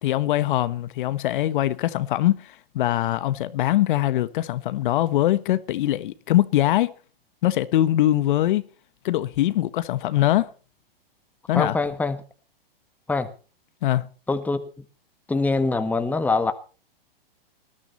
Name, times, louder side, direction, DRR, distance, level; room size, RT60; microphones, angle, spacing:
voice 1, 0.0-6.9 7.4-8.6 9.0-10.5 11.5-11.7 13.8-14.1, left 14 dB, 55° left, 1.4 m, -22 dB
voice 2, 11.5-12.2 13.1-13.3 14.3-14.7 15.3-16.5, left 3 dB, 5° left, 1.5 m, -23 dB
20.0 x 13.0 x 4.2 m
hypercardioid pair, 130°, 30 cm